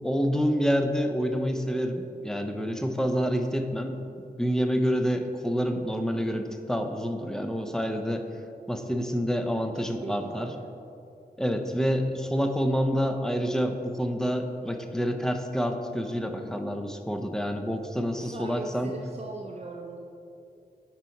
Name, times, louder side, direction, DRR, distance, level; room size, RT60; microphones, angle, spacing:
voice 1, 0.0-8.3 8.7-10.5 11.4-18.9, equal, 5° left, 6 dB, 0.6 m, -28 dB
voice 2, 9.7-10.6 18.2-20.0, right 3 dB, 40° right, 1 dB, 0.5 m, -40 dB
10.5 x 4.6 x 4.1 m, 2.7 s
wide cardioid pair, 90°, 17 cm